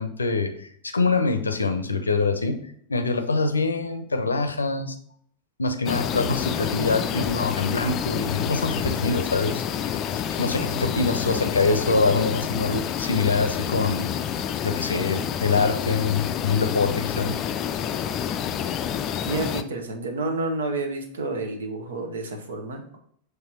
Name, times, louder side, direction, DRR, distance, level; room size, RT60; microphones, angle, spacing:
voice 1, 0.0-2.6 2.9-5.0 5.6-14.1 14.4-17.4, left 3 dB, 75° left, 8 dB, 0.6 m, -25 dB
sound 1, 5.9-19.6, left 9 dB, 35° left, 0.4 m, -28 dB
voice 2, 19.3-23.0, right 2 dB, 65° right, 5 dB, 1.0 m, -30 dB
6.8 x 3.3 x 4.3 m, 0.64 s
figure-of-eight pair, 90°, 0 cm